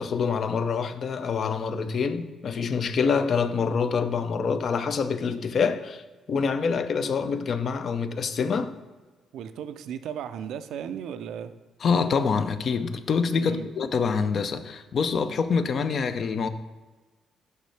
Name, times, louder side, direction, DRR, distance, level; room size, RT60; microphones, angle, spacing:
voice 1, 0.0-6.0 6.3-8.8 11.8-16.5, left 5 dB, 55° left, 0.4 m, -26 dB
voice 2, 9.3-11.5 13.4-13.7, right 8 dB, 80° right, 0.4 m, -35 dB
6.5 x 5.5 x 3.3 m
cardioid pair, 90°, 0 cm